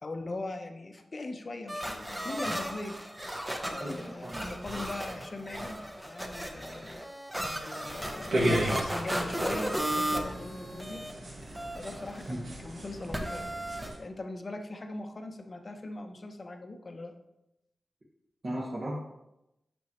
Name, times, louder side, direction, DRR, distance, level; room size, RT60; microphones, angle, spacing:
voice 1, 0.0-2.9 3.6-5.8 6.0-7.0 7.6-11.0 11.7-13.5 14.0-17.1, left 2 dB, 40° left, 5 dB, 0.8 m, -40 dB
sound 1, 1.7-11.1 11.4-12.3 13.1-13.9, right 1 dB, 10° right, 0.8 m, -35 dB
voice 2, 3.8-4.5 12.3-12.4 18.4-19.0, right 1 dB, 35° right, -6 dB, 1.4 m, -36 dB
sound 2, 8.3-14.0, equal, 80° right, 1.9 m, -34 dB
8.6 x 6.1 x 3.0 m, 0.90 s
wide cardioid pair, 145°, 0 cm